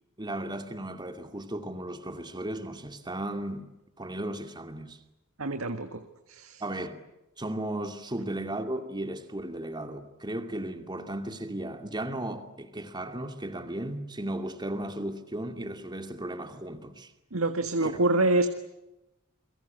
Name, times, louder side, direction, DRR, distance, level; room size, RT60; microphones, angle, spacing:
voice 1, 0.2-3.7 4.0-5.0 6.6-7.0 7.4-17.1 17.8-18.0, right 1 dB, 20° right, 2.5 m, -35 dB
voice 2, 5.4-6.0 6.3-6.6 17.3-18.5, right 2 dB, 80° right, 1.8 m, -26 dB
29.0 x 22.5 x 8.0 m
head